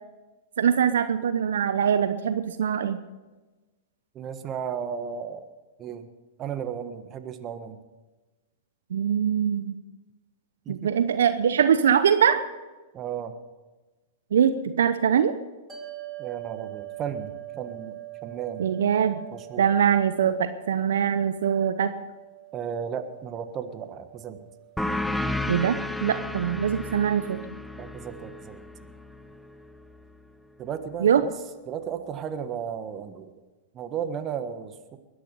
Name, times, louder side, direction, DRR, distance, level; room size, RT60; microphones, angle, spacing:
voice 1, 0.6-3.0 8.9-9.8 10.7-12.4 14.3-15.3 18.6-19.2 19.6-21.9 25.5-27.4 31.0-31.2, right 8 dB, 75° right, 11 dB, 0.8 m, -23 dB
voice 2, 4.1-5.5 5.8-6.1 6.4-7.8 10.6-10.8 12.9-13.3 16.2-18.0 18.2-18.7 19.3-19.7 22.5-24.5 27.4-27.5 27.8-28.6 30.6-31.3 31.7-33.3 33.7-35.0, right 8 dB, 30° right, 9 dB, 1.4 m, -34 dB
sound 1, 15.7-28.2, right 16 dB, 15° right, 3.1 m, -44 dB
sound 2, 24.8-30.0, left 2 dB, ahead, 0.7 m, -33 dB
21.5 x 10.0 x 5.5 m, 1.2 s
hypercardioid pair, 105°, 0 cm